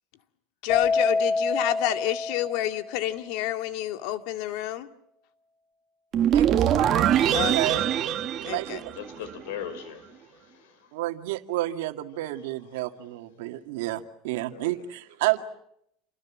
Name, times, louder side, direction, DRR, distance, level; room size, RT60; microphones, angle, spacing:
voice 1, 0.6-4.9 7.3-7.9 8.4-8.8, left 14 dB, 65° left, 2.1 m, -29 dB
Keyboard (musical), 0.7-3.2, left 4 dB, 35° left, 3.8 m, -27 dB
sound 1, 6.1-9.4, right 10 dB, 40° right, 1.9 m, -23 dB
voice 2, 6.3-7.9 8.4-8.9 10.9-15.4, right 16 dB, 85° right, 2.1 m, -31 dB
voice 3, 8.9-10.9 14.5-14.9, left 9 dB, 90° left, 5.4 m, -40 dB
28.5 x 24.0 x 7.4 m
supercardioid pair, 140°, 0 cm